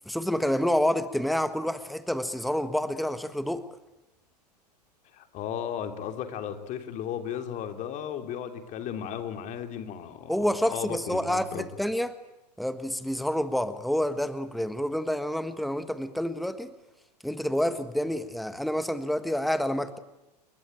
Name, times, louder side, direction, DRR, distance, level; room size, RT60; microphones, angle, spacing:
voice 1, 0.1-3.6 10.3-12.1 12.6-16.7 17.2-20.0, equal, ahead, 12 dB, 1.5 m, -28 dB
voice 2, 5.1-11.7, left 9 dB, 35° left, 7 dB, 3.4 m, -35 dB
29.5 x 22.0 x 9.2 m, 0.93 s
hypercardioid pair, 105°, 21 cm